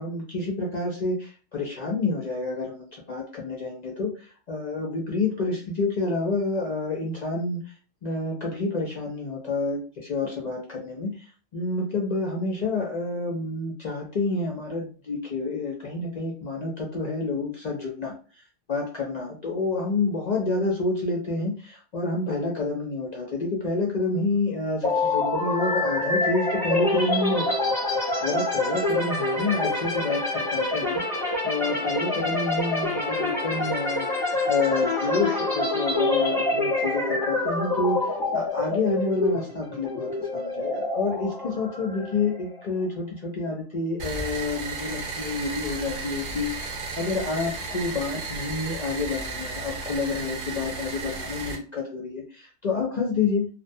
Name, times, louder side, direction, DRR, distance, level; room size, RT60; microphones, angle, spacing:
voice 1, 0.0-7.7 8.0-18.1 18.7-27.7 28.2-34.1 34.5-53.5, left 3 dB, 55° left, -1 dB, 0.5 m, -29 dB
sound 1, 24.8-42.6, left 2 dB, 5° left, 0.7 m, -26 dB
sound 2, 44.0-51.6, right 3 dB, 55° right, 0.7 m, -34 dB
2.5 x 2.1 x 2.6 m, 0.37 s
omnidirectional pair, 1.2 m